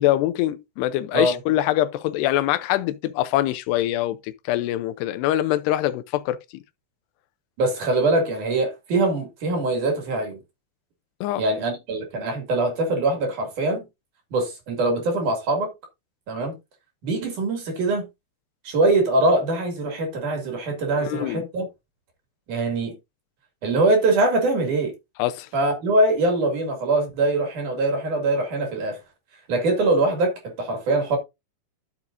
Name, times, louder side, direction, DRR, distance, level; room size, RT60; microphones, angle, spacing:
voice 1, 0.0-6.4 11.2-11.4 21.1-21.5 25.2-25.5, left 14 dB, 85° left, 2.7 m, -24 dB
voice 2, 7.6-10.4 11.4-13.9 14.3-15.7 16.3-16.6 17.0-18.1 18.7-21.7 22.5-23.0 23.6-24.9 25.5-29.0 29.5-31.2, right 2 dB, 50° right, 3.6 m, -23 dB
12.0 x 7.2 x 2.6 m
omnidirectional pair, 4.8 m